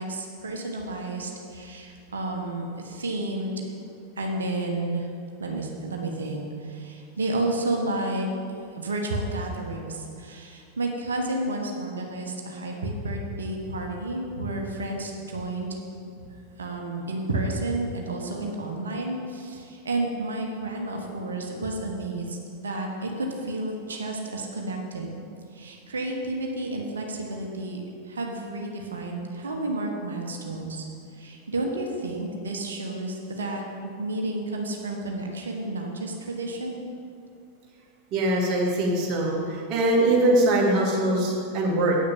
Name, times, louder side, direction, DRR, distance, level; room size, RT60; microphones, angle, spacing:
voice 1, 0.0-3.6 4.2-5.1 5.4-8.3 8.7-15.8 16.6-25.2 25.5-30.8 31.1-36.8, right 2 dB, 70° right, 1 dB, 1.4 m, -31 dB
voice 2, 38.1-42.0, right 1 dB, 40° right, -3 dB, 2.5 m, -22 dB
8.8 x 6.5 x 7.4 m, 2.4 s
figure-of-eight pair, 90°, 0 cm